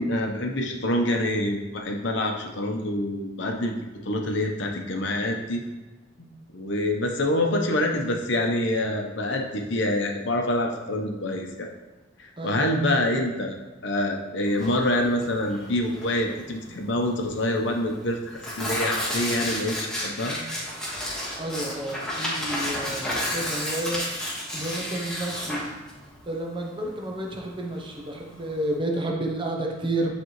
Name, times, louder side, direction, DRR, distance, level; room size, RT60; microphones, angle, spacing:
voice 1, 0.0-3.7 4.0-5.6 6.5-11.7 12.2-13.6 13.8-18.2 18.6-20.4, left 1 dB, 65° left, 2 dB, 0.8 m, -26 dB
voice 2, 12.4-12.8 21.4-24.0 24.5-25.7 26.3-30.1, right 1 dB, 25° right, 0 dB, 0.9 m, -30 dB
Tearing, 14.5-28.8, equal, 5° left, 1.5 m, -32 dB
9.1 x 3.4 x 3.1 m, 1.1 s
head